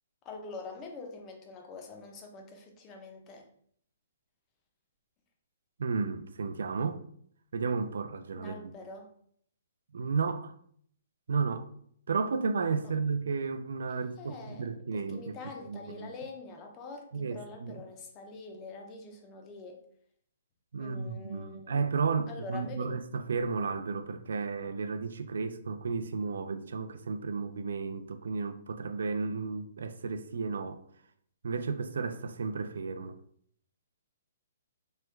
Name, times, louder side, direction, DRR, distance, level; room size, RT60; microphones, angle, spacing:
voice 1, 0.2-3.5 8.4-9.1 12.8-12.9 14.2-19.8 20.8-21.8 22.3-23.0, left 3 dB, 20° left, 0.5 m, -45 dB
voice 2, 5.8-7.0 7.5-8.5 9.9-10.5 11.3-11.7 12.1-15.4 15.7-16.1 17.1-17.8 20.7-30.8 31.4-33.2, right 5 dB, 80° right, 0.3 m, -33 dB
3.1 x 2.2 x 3.2 m
hypercardioid pair, 160°, 0 cm